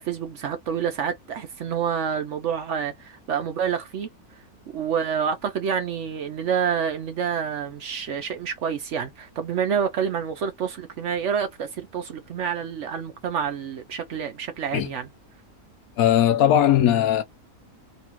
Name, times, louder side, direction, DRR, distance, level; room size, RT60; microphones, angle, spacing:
voice 1, 0.0-4.1 4.7-15.1, right 7 dB, 60° right, 0.8 m, -28 dB
voice 2, 16.0-17.2, left 10 dB, 75° left, 1.0 m, -18 dB
2.9 x 2.3 x 2.8 m
omnidirectional pair, 1.6 m